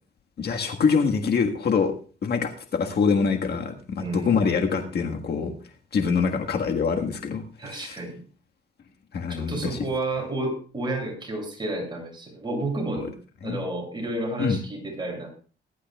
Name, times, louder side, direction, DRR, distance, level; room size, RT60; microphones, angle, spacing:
voice 1, 0.4-1.9 2.2-5.5 5.9-8.0 9.1-9.8 12.9-13.1 13.4-13.6 14.4-14.6, left 5 dB, 55° left, 4 dB, 1.6 m, -25 dB
voice 2, 4.0-4.5 7.6-8.2 9.3-13.1 13.4-15.3, right 1 dB, 25° right, 0 dB, 7.5 m, -31 dB
21.0 x 11.5 x 2.3 m, 0.38 s
cardioid pair, 90°, 20 cm